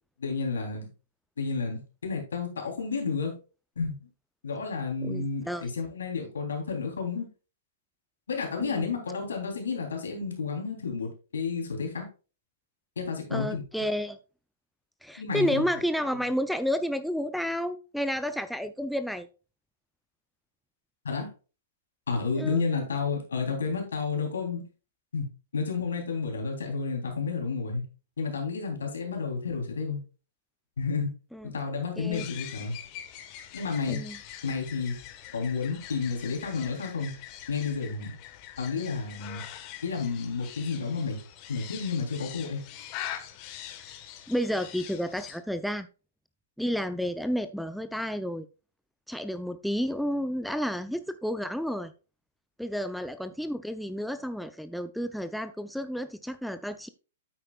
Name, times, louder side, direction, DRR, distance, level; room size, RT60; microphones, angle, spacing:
voice 1, 0.2-0.9 1.4-3.3 3.8-4.1 4.4-7.3 8.3-12.1 13.0-13.6 15.2-15.7 21.0-21.3 22.1-24.6 25.1-25.3 25.5-27.8 28.2-30.0 30.8-31.1 31.4-32.8 33.5-34.0 34.4-35.0 35.3-37.1 37.5-38.1 38.6-39.4 39.8-41.2 41.5-42.6, left 5 dB, 75° left, 2 dB, 3.4 m, -31 dB
voice 2, 5.0-5.7 8.6-8.9 13.3-14.2 15.0-19.3 22.4-22.6 31.3-31.5 32.0-32.2 33.9-34.2 44.3-45.9 46.6-48.5 49.1-51.9 52.6-56.9, equal, ahead, 10 dB, 0.5 m, -31 dB
sound 1, 32.1-45.4, left 11 dB, 40° left, 1.4 m, -43 dB
9.1 x 8.6 x 2.4 m, 0.34 s
hypercardioid pair, 115°, 0 cm